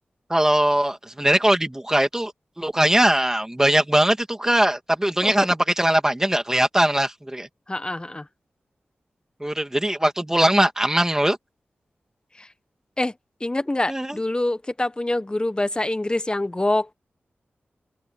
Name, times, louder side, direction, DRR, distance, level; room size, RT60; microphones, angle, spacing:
voice 1, 0.3-2.3 2.6-7.5 9.4-11.4 13.9-14.2, right 1 dB, 10° right, 2.5 m, -20 dB
voice 2, 7.7-8.2 12.4-12.5 13.0-13.1 13.4-16.9, left 1 dB, 20° left, 1.2 m, -25 dB
open air
wide cardioid pair, 75°, 4 cm